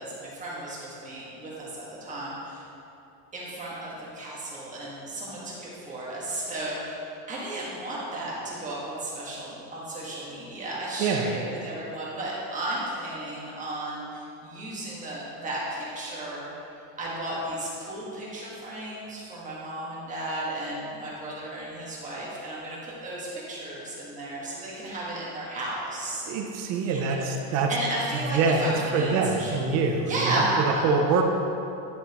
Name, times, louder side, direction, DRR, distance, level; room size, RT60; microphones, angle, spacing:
voice 1, 0.0-2.6 3.3-26.2 26.8-27.4 27.7-29.7 30.0-30.9, right 1 dB, 20° right, -6 dB, 1.6 m, -34 dB
voice 2, 11.0-11.3 26.2-27.7 28.1-31.2, right 4 dB, 40° right, 2 dB, 0.6 m, -25 dB
10.5 x 6.9 x 3.0 m, 2.8 s
cardioid pair, 170°, 40 cm